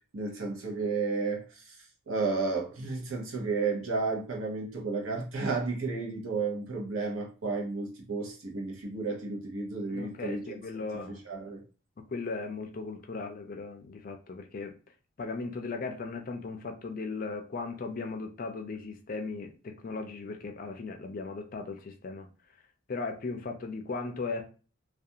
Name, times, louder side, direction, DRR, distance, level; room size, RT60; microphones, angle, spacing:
voice 1, 0.1-1.7 2.1-10.4 11.3-11.6, right 4 dB, 70° right, 0.8 m, -32 dB
voice 2, 9.9-11.2 12.1-14.8 15.2-22.3 22.9-24.4, left 3 dB, 40° left, 0.4 m, -37 dB
2.4 x 2.3 x 2.7 m
head